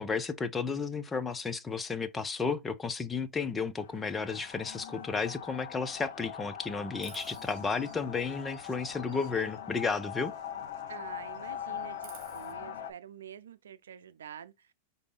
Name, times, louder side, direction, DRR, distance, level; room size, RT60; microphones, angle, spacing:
voice 1, 0.0-10.3, left 5 dB, 15° left, 0.6 m, -33 dB
sound 1, 3.8-12.9, left 8 dB, 70° left, 0.8 m, -42 dB
Chirp tweet, 7.0-11.0 11.3-12.5, right 8 dB, 45° right, 2.0 m, -56 dB
voice 2, 10.9-14.7, right 9 dB, 85° right, 0.6 m, -47 dB
4.7 x 2.7 x 3.8 m
hypercardioid pair, 115°, 0 cm